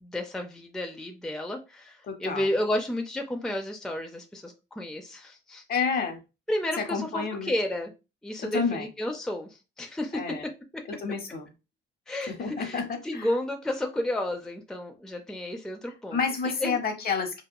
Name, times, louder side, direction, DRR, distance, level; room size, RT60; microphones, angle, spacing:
voice 1, 0.0-5.6 6.5-7.9 8.2-10.4 10.7-10.8 12.1-16.2 16.4-16.8, left 1 dB, 5° left, 3 dB, 0.4 m, -32 dB
voice 2, 2.1-2.5 5.7-6.2 6.8-7.5 8.5-8.9 10.1-10.5 11.0-11.5 12.3-13.3 16.1-17.4, left 5 dB, 50° left, 5 dB, 0.8 m, -29 dB
2.9 x 2.2 x 2.2 m, 0.28 s
cardioid pair, 90°, 20 cm